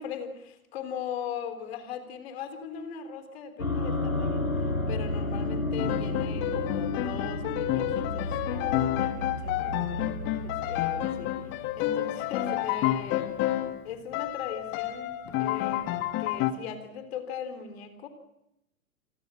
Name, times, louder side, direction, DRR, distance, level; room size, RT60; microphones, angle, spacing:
voice 1, 0.0-10.1 10.4-13.3 13.8-18.1, left 8 dB, 45° left, 9 dB, 3.6 m, -39 dB
sound 1, 3.6-11.9, left 2 dB, 90° left, 4.2 m, -32 dB
Piano, 5.8-13.8 14.1-16.5, left 13 dB, 25° left, 1.5 m, -30 dB
29.5 x 20.5 x 6.2 m, 0.85 s
figure-of-eight pair, 110°, 41 cm